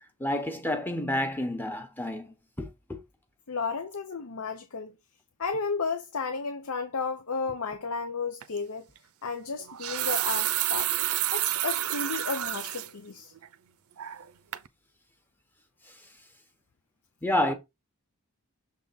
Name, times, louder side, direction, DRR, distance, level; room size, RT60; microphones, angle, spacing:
voice 1, 0.0-3.0 15.9-16.0 17.2-17.5, left 1 dB, 10° left, 0.9 m, -30 dB
voice 2, 3.5-5.0 5.4-8.9 9.2-10.9 11.3-13.3, left 4 dB, 75° left, 0.8 m, -33 dB
sound 1, 8.4-8.6 9.6-12.9 13.4-13.5 14.0-14.3 14.5-14.7, right 13 dB, 75° right, 0.5 m, -29 dB
6.5 x 3.6 x 4.0 m
head